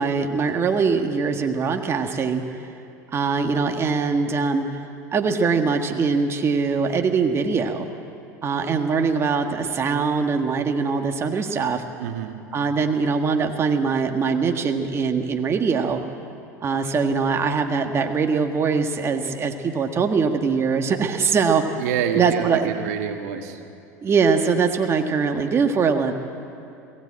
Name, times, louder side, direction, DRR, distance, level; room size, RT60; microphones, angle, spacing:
voice 1, 0.0-2.6 3.1-4.6 5.1-7.9 8.4-11.8 12.5-16.0 16.6-21.7 22.1-22.7 24.0-26.1, right 5 dB, 30° right, 4 dB, 1.6 m, -22 dB
voice 2, 12.0-12.4 21.8-23.6, right 8 dB, 75° right, 4 dB, 1.9 m, -27 dB
21.5 x 16.5 x 8.8 m, 2.8 s
hypercardioid pair, 100°, 9 cm